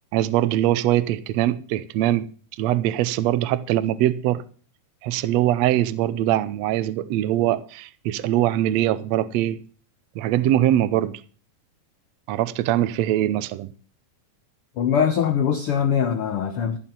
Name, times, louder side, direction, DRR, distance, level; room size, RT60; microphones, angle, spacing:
voice 1, 0.1-2.3 2.6-4.4 5.0-9.6 10.1-11.2 12.3-13.7, right 13 dB, 80° right, 1.5 m, -22 dB
voice 2, 14.8-16.8, left 8 dB, 90° left, 1.2 m, -22 dB
14.0 x 6.0 x 8.9 m
omnidirectional pair, 4.0 m